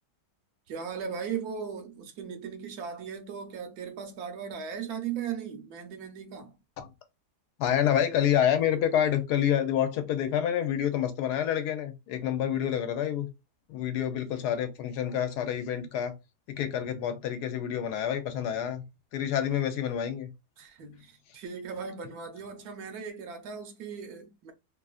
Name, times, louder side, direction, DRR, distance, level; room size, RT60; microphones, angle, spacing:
voice 1, 0.7-6.6 20.6-24.5, right 7 dB, 75° right, 1.1 m, -38 dB
voice 2, 7.6-13.3 13.7-16.2 16.5-18.8 19.1-20.3, left 10 dB, 85° left, 1.2 m, -28 dB
3.0 x 2.5 x 2.3 m
omnidirectional pair, 1.7 m